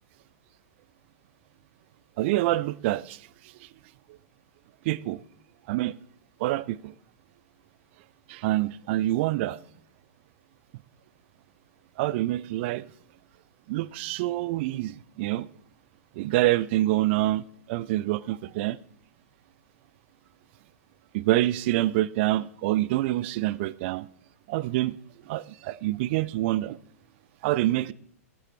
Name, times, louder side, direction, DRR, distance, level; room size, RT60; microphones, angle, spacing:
voice 1, 2.2-3.2 4.8-5.2 5.7-5.9 6.4-6.9 8.3-9.6 12.0-12.8 13.7-15.5 16.2-18.8 21.1-24.1 24.5-25.0 25.3-26.8 27.4-27.9, right 16 dB, 45° right, 0.4 m, -26 dB
11.5 x 8.2 x 4.4 m
figure-of-eight pair, 105°, 8 cm